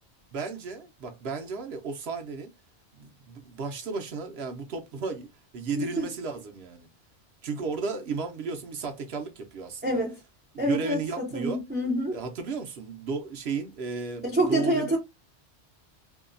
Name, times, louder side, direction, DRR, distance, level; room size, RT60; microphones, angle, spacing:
voice 1, 0.3-2.5 3.0-5.3 5.5-6.9 7.4-10.0 10.5-11.6 12.1-15.0, right 4 dB, 65° right, 0.9 m, -34 dB
voice 2, 9.8-10.2 10.6-12.2 14.2-15.0, equal, 15° right, 0.4 m, -27 dB
2.7 x 2.2 x 2.4 m
omnidirectional pair, 1.2 m